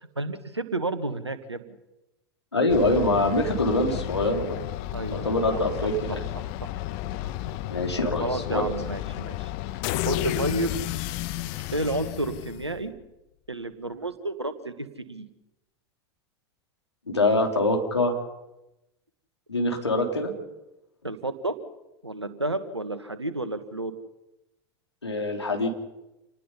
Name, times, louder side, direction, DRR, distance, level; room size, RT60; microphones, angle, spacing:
voice 1, 0.1-1.8 4.9-6.8 7.1-7.6 8.2-9.5 10.0-10.7 11.7-12.9 13.5-15.2 21.0-21.6 22.0-23.9, right 2 dB, 90° right, 11 dB, 1.7 m, -31 dB
voice 2, 2.5-4.6 5.1-6.2 7.7-8.7 17.1-18.2 19.5-20.3 25.0-25.7, left 2 dB, 85° left, 2 dB, 3.7 m, -24 dB
sound 1, 2.7-13.0, left 15 dB, 50° left, 1.2 m, -32 dB
28.0 x 19.5 x 5.7 m, 0.95 s
figure-of-eight pair, 85°, 14 cm